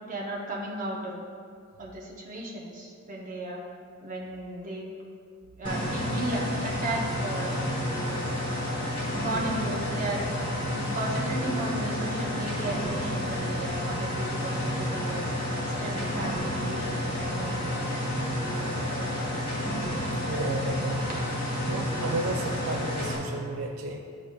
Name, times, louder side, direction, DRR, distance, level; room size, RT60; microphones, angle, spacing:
voice 1, 0.0-1.2 1.8-3.6 4.0-4.8 5.6-7.6 9.1-10.2 10.6-15.2 15.6-18.1 18.9-19.2 21.1-21.3 21.6-21.7, right 1 dB, 40° right, -3 dB, 1.0 m, -35 dB
sound 1, 5.6-23.2, left 1 dB, 25° left, 1.1 m, -30 dB
voice 2, 20.3-21.1 21.7-24.0, right 2 dB, 80° right, 2 dB, 0.4 m, -32 dB
11.0 x 4.0 x 2.4 m, 2.3 s
head